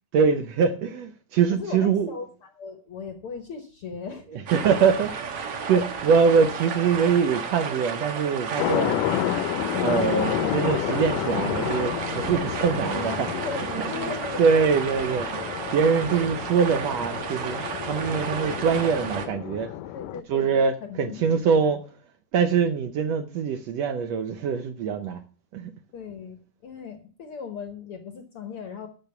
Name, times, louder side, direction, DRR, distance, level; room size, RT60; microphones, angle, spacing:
voice 1, 0.1-2.2 4.3-9.1 9.8-13.3 14.0-14.1 14.4-15.4 15.7-19.7 20.3-21.8 22.3-25.2 25.5-25.7, right 6 dB, 75° right, 1.5 m, -23 dB
voice 2, 1.5-4.3 4.5-4.6 5.7-5.9 12.8-14.4 19.9-21.8 25.9-28.9, left 5 dB, 65° left, 1.4 m, -37 dB
sound 1, 4.5-19.3, right 5 dB, 55° right, 1.9 m, -33 dB
sound 2, 8.6-20.2, left 13 dB, 80° left, 2.2 m, -30 dB
12.0 x 6.2 x 6.9 m
omnidirectional pair, 3.8 m